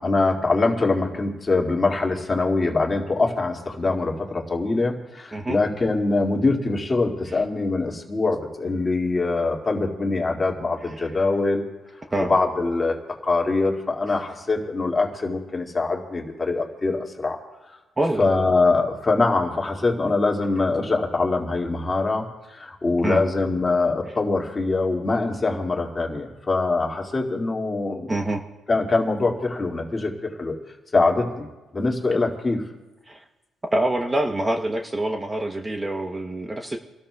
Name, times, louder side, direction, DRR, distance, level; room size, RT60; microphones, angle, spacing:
voice 1, 0.0-11.7 12.3-13.0 13.2-17.4 18.2-22.2 22.5-28.1 28.7-30.6 30.9-31.5 31.7-32.6, left 3 dB, 25° left, 0 dB, 2.1 m, -23 dB
voice 2, 18.0-18.3 23.0-23.2 28.1-28.4 33.1-33.2 33.7-36.8, right 1 dB, 20° right, 4 dB, 0.9 m, -25 dB
30.0 x 13.0 x 2.3 m, 1.1 s
cardioid pair, 90°, 0 cm